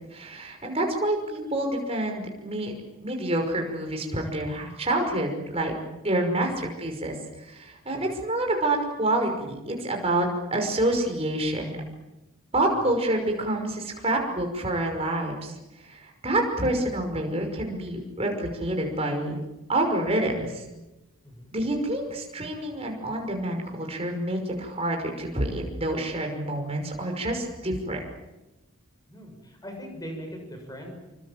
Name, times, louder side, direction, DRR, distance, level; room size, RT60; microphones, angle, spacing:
voice 1, 0.1-2.7 3.0-5.7 6.0-7.1 7.4-11.8 12.5-15.6 15.8-19.4 19.7-20.6 21.5-28.1, right 1 dB, 25° right, 2 dB, 5.8 m, -27 dB
voice 2, 21.2-21.6 29.1-31.2, equal, 15° left, 3 dB, 7.2 m, -41 dB
27.5 x 24.5 x 7.8 m, 1.0 s
head